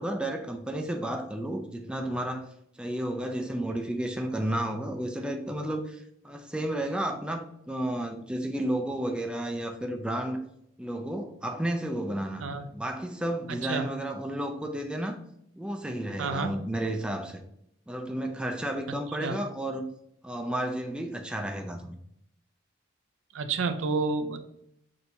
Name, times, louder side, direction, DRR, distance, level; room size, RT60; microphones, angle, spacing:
voice 1, 0.0-2.5 2.8-10.4 10.8-12.4 12.7-15.2 15.6-17.4 17.9-19.9 20.2-22.0, right 1 dB, 5° right, 4 dB, 0.3 m, -32 dB
voice 2, 16.2-16.6 19.2-19.4 23.3-24.4, right 4 dB, 70° right, 9 dB, 0.4 m, -29 dB
6.1 x 2.7 x 2.7 m, 0.74 s
head